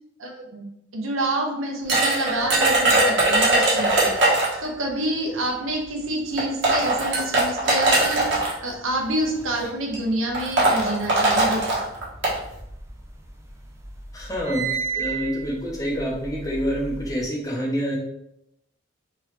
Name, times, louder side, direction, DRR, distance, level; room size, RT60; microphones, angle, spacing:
voice 1, 0.2-0.7 0.9-8.2 8.6-11.6, right 1 dB, 85° right, 1 dB, 0.9 m, -28 dB
sound 1, 1.9-4.6 5.7-5.8 6.4-8.5 9.4-9.7 9.9-10.0 10.3-12.4, right 2 dB, 60° right, 1.2 m, -20 dB
sound 2, 12.4-13.5 13.8-17.2, right 6 dB, 15° right, 0.4 m, -32 dB
voice 2, 14.1-14.7 14.9-18.0, equal, 15° left, -2 dB, 0.8 m, -27 dB
3.5 x 3.3 x 3.1 m, 0.80 s
head